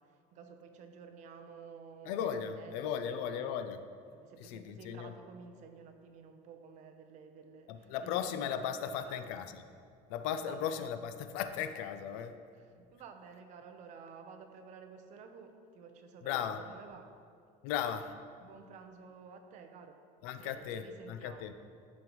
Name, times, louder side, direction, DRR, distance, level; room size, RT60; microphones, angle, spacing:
voice 1, 0.0-2.8 3.0-3.5 4.1-9.4 10.4-10.7 12.1-17.1 18.4-20.0 20.4-21.5, right 5 dB, 50° right, 6 dB, 0.8 m, -52 dB
voice 2, 2.0-3.8 4.4-5.1 7.7-9.6 10.1-12.3 16.2-16.6 17.6-18.1 20.2-21.5, left 8 dB, 85° left, 10 dB, 0.5 m, -36 dB
13.0 x 5.2 x 3.1 m, 2.3 s
cardioid pair, 150°, 16 cm